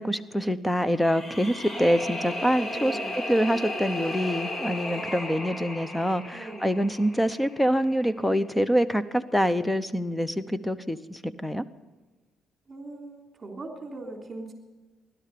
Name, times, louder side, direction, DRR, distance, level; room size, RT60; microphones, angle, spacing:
voice 1, 0.0-3.0 3.3-11.6, equal, 5° left, 14 dB, 0.8 m, -25 dB
sound 1, 0.9-8.0, left 1 dB, 30° left, 2.6 m, -35 dB
voice 2, 2.7-3.2 6.3-6.8 12.7-14.5, right 2 dB, 30° right, 2 dB, 3.4 m, -40 dB
17.0 x 12.0 x 6.8 m, 1.2 s
cardioid pair, 90°, 0 cm